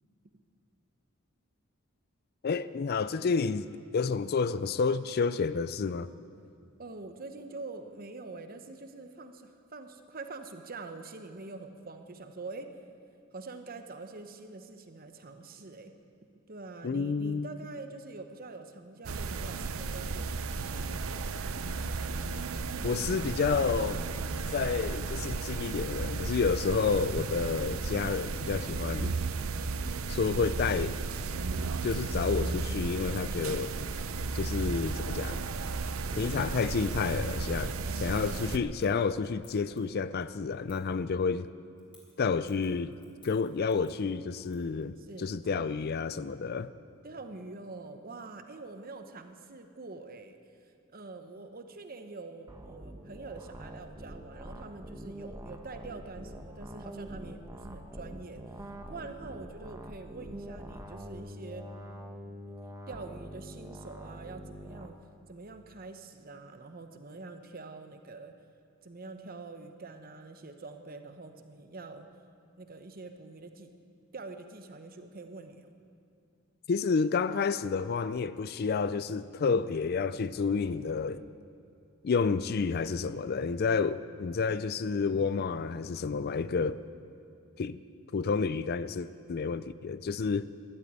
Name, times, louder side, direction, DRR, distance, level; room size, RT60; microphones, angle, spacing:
voice 1, 2.4-6.1 16.8-17.5 22.8-24.1 24.5-29.1 30.1-31.0 31.8-33.7 34.3-35.4 36.1-37.7 38.0-41.5 42.2-42.9 43.2-46.7 76.7-81.2 82.0-86.8 87.6-87.8 88.1-90.5, left 5 dB, 45° left, 0.4 m, -30 dB
voice 2, 6.8-12.8 13.3-15.9 16.5-20.9 29.0-29.2 37.8-38.7 41.1-41.3 45.0-45.7 47.0-61.7 62.9-65.0 65.3-68.4 68.8-72.1 72.6-73.7 74.1-75.7 79.5-79.7 82.8-83.2, right 3 dB, 45° right, 1.0 m, -45 dB
sound 1, 19.0-38.6, right 4 dB, 75° right, 0.7 m, -34 dB
Keys jangling, 25.6-25.9 26.3-26.5 26.8-28.4 29.2-29.6 30.4-31.4 31.7-32.5 33.1-33.4 33.7-33.9 34.2-39.8 40.7-41.0 41.8-44.8 45.1-45.2, left 3 dB, 25° left, 3.6 m, -61 dB
sound 2, 52.5-64.9, equal, 15° right, 1.0 m, -45 dB
13.5 x 11.5 x 8.9 m
head